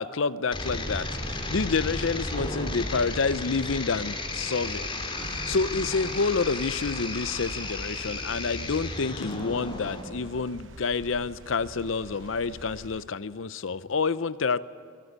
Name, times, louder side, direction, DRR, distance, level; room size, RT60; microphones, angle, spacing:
voice 1, 0.0-4.9 5.3-14.6, left 4 dB, 80° left, 16 dB, 0.6 m, -28 dB
sound 1, 0.5-10.0, left 2 dB, 25° left, 3.1 m, -33 dB
sound 2, 5.2-13.0, right 2 dB, 70° right, 1.1 m, -44 dB
26.0 x 13.5 x 9.7 m, 2.2 s
head